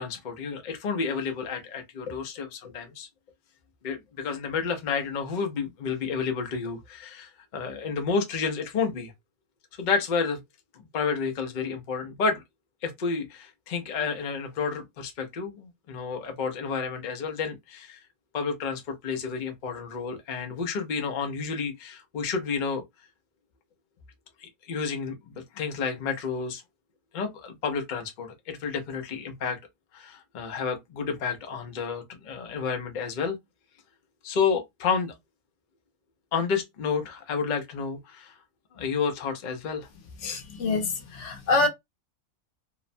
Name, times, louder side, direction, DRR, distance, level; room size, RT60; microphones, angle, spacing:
voice 1, 0.0-3.1 3.8-9.1 9.8-10.4 10.9-12.4 12.8-18.0 18.3-22.8 24.4-26.6 27.1-29.6 29.9-33.4 34.2-35.1 36.3-38.3 38.7-39.9, left 5 dB, 80° left, 0.4 m, -30 dB
voice 2, 40.2-41.7, left 3 dB, 60° left, 0.9 m, -26 dB
2.8 x 2.1 x 2.5 m
omnidirectional pair, 1.6 m